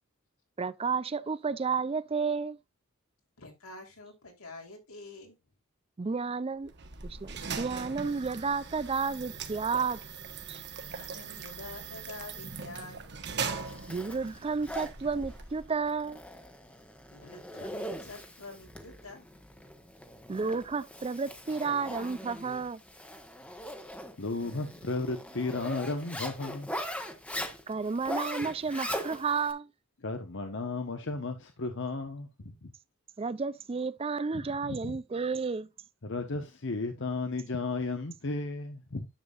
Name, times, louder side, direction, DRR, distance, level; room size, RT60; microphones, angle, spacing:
voice 1, 0.6-2.6 6.0-6.7 7.0-10.0 10.5-10.6 13.9-16.2 20.3-22.8 27.7-29.7 33.2-35.7, right 5 dB, 25° right, 0.4 m, -32 dB
voice 2, 3.4-5.4 10.8-13.0 17.1-19.2, left 3 dB, 80° left, 3.5 m, -47 dB
sound 1, 6.6-15.9, right 5 dB, 50° right, 1.3 m, -40 dB
Zipper (clothing), 13.3-29.5, equal, 5° left, 1.1 m, -41 dB
voice 3, 24.2-26.7 30.0-32.7 34.3-34.9 36.0-39.1, left 3 dB, 60° left, 1.0 m, -34 dB
10.5 x 7.3 x 2.4 m
head